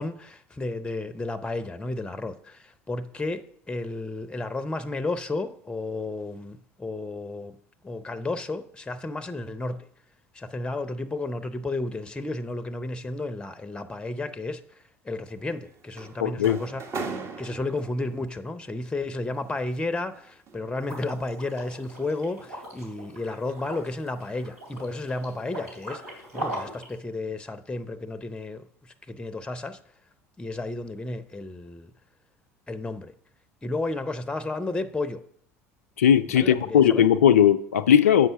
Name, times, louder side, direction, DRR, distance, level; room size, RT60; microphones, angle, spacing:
voice 1, 0.0-7.6 7.8-9.9 10.3-16.8 17.1-29.8 30.4-31.9 32.7-33.1 33.6-35.2 36.4-37.1, left 2 dB, 10° left, 0.6 m, -32 dB
sound 1, 15.3-18.2 19.4-21.3 21.7-22.0 22.4-22.7, right 4 dB, 35° right, 1.2 m, -39 dB
voice 2, 16.2-16.6 36.0-38.3, left 9 dB, 80° left, 0.4 m, -18 dB
Liquid, 20.8-26.9, right 1 dB, 80° right, 3.2 m, -39 dB
7.8 x 5.4 x 5.7 m
figure-of-eight pair, 70°, 8 cm